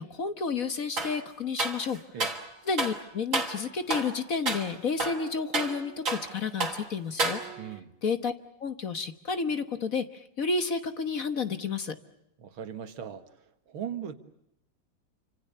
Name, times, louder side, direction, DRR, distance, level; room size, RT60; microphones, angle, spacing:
voice 1, 0.0-2.0 2.6-7.4 8.0-8.3 8.6-12.0, left 5 dB, 45° left, 1.5 m, -31 dB
sound 1, 1.0-1.2 1.6-2.5 2.8-3.0 3.3-3.6 3.9-4.2 4.5-4.7 5.0-6.3 6.6-6.8 7.2-7.8, right 3 dB, 40° right, 3.2 m, -30 dB
voice 2, 7.6-7.9 12.4-13.2 13.7-14.1, right 8 dB, 80° right, 2.5 m, -38 dB
28.5 x 26.0 x 6.7 m
omnidirectional pair, 2.2 m